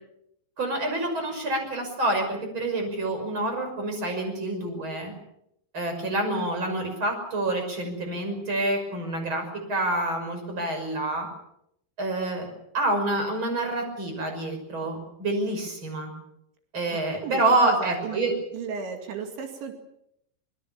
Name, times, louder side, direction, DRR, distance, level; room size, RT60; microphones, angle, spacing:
voice 1, 0.6-5.1 5.7-11.3 12.0-16.1 16.7-18.3, right 2 dB, 25° right, 4 dB, 6.5 m, -27 dB
voice 2, 16.9-18.2 18.5-19.7, right 6 dB, 80° right, 4 dB, 4.5 m, -35 dB
24.0 x 22.0 x 7.3 m, 0.77 s
omnidirectional pair, 5.2 m